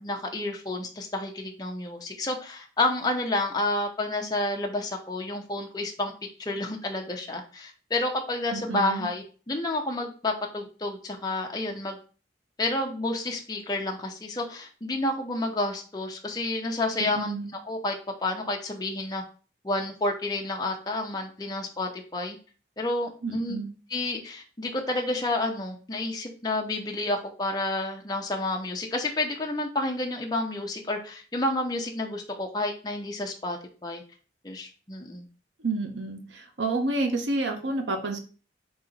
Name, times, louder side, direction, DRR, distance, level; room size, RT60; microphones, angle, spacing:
voice 1, 0.0-6.1 6.4-12.0 12.6-17.3 17.6-19.2 19.6-22.4 22.8-23.6 23.9-34.0 34.4-35.3, left 2 dB, 20° left, 1 dB, 0.6 m, -30 dB
voice 2, 8.5-9.1 17.0-17.5 23.2-23.7 35.6-38.2, right 2 dB, 75° right, 5 dB, 0.8 m, -29 dB
4.0 x 2.9 x 3.9 m, 0.37 s
head